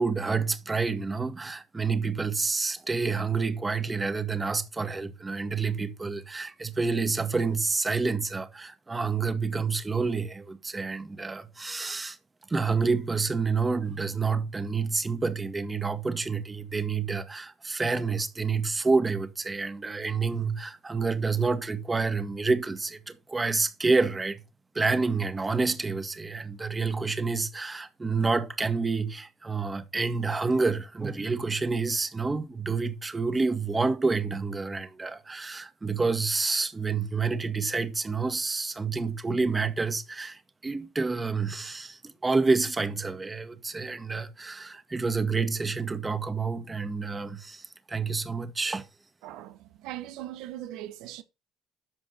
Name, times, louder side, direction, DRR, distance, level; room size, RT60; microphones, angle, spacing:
voice 1, 0.0-12.2 12.5-24.4 24.7-48.8, right 4 dB, 20° right, 1.6 m, -28 dB
voice 2, 49.2-51.2, right 13 dB, 80° right, 1.0 m, -40 dB
13.0 x 5.2 x 4.3 m
supercardioid pair, 85°, 0 cm